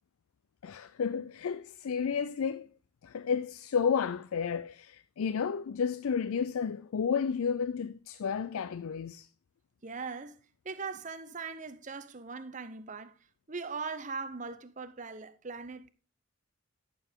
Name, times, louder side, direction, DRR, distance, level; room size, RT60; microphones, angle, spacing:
voice 1, 0.6-2.7 3.0-9.3, left 6 dB, 80° left, 0.4 m, -32 dB
voice 2, 9.8-13.1 13.5-15.9, right 4 dB, 35° right, 0.7 m, -40 dB
11.0 x 6.9 x 3.6 m
head